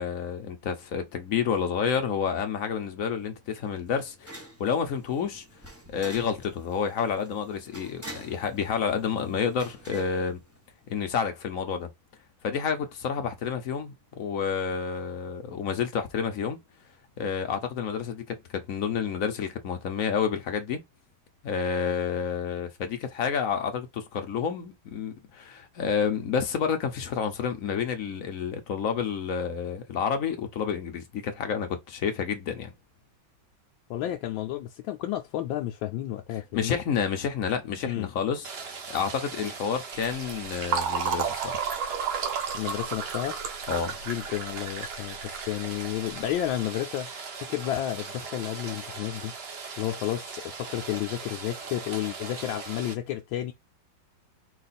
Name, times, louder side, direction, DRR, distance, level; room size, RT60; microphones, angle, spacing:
voice 1, 0.0-5.4 5.9-10.4 10.9-11.9 12.4-16.6 17.2-20.8 21.4-32.7 36.5-41.6 43.7-44.0, left 7 dB, 60° left, 0.9 m, -29 dB
sound 1, 2.7-11.0, right 1 dB, 20° right, 0.3 m, -48 dB
voice 2, 33.9-36.8 37.9-38.1 42.5-43.4 44.1-47.1 47.4-49.3 49.8-53.5, left 13 dB, 80° left, 1.3 m, -31 dB
Rain, 38.4-52.9, right 5 dB, 50° right, 0.7 m, -40 dB
Fill (with liquid), 40.0-46.4, right 7 dB, 90° right, 1.8 m, -32 dB
4.7 x 2.4 x 4.0 m
omnidirectional pair, 2.2 m